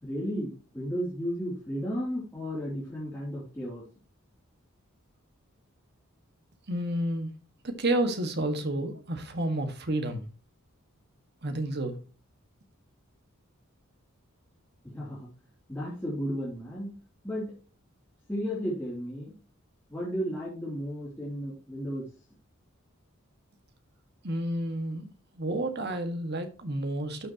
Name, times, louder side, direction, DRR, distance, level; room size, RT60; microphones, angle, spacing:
voice 1, 0.0-3.8 14.8-15.3 15.7-16.9 17.2-17.5 18.3-19.3 19.9-22.1, equal, 10° left, 3.0 m, -34 dB
voice 2, 6.7-7.3 7.6-10.3 11.4-12.0 24.2-25.1 25.4-27.3, right 1 dB, 55° right, 1.7 m, -30 dB
12.0 x 6.5 x 3.0 m
head